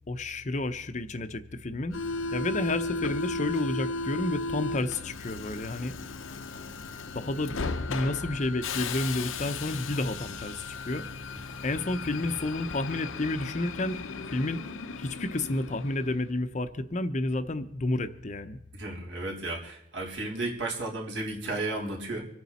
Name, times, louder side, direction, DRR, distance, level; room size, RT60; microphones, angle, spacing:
voice 1, 0.1-2.0 2.3-5.9 7.1-7.6 7.9-11.1 11.6-14.0 14.3-14.6 15.0-18.6, left 2 dB, 40° left, 11 dB, 0.7 m, -30 dB
Subway metro underground, 1.9-16.3, left 3 dB, 85° left, 0.8 m, -36 dB
voice 2, 18.7-22.3, right 2 dB, 65° right, -2 dB, 3.8 m, -33 dB
25.5 x 9.2 x 4.2 m, 0.80 s
head